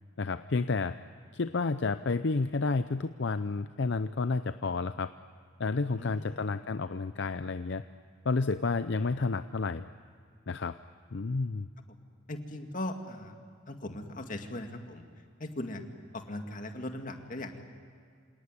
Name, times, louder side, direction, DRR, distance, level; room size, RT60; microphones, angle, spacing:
voice 1, 0.2-1.0 1.3-5.1 5.6-7.8 8.2-9.8 10.5-10.8 11.1-11.7, left 3 dB, 60° left, 11 dB, 0.6 m, -30 dB
voice 2, 6.0-6.5 9.2-9.3 12.3-13.4 13.7-15.0 15.4-15.8 16.1-17.6, left 1 dB, 40° left, 5 dB, 2.2 m, -39 dB
27.5 x 18.5 x 9.7 m, 2.2 s
head